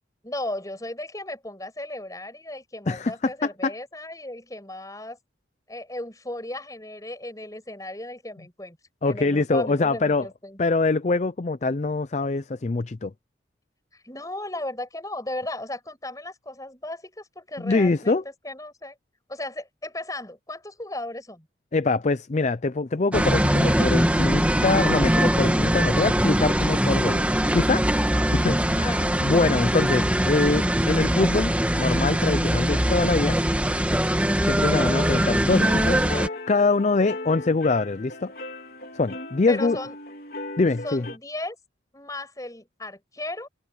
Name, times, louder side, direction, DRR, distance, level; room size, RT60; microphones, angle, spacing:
voice 1, 0.2-5.2 5.7-8.8 9.0-10.6 13.9-19.0 19.3-21.5 28.1-28.3 28.9-29.3 39.5-39.9 40.8-41.6 41.9-43.5, left 1 dB, 20° left, 6.9 m, -35 dB
voice 2, 2.9-3.7 9.0-10.3 10.6-13.1 17.6-18.2 21.7-33.4 34.4-38.3 38.9-39.8 40.6-41.1, left 3 dB, 40° left, 0.5 m, -24 dB
sound 1, 23.1-36.3, equal, 10° right, 2.2 m, -22 dB
sound 2, 34.9-41.2, left 2 dB, 55° left, 4.0 m, -37 dB
open air
head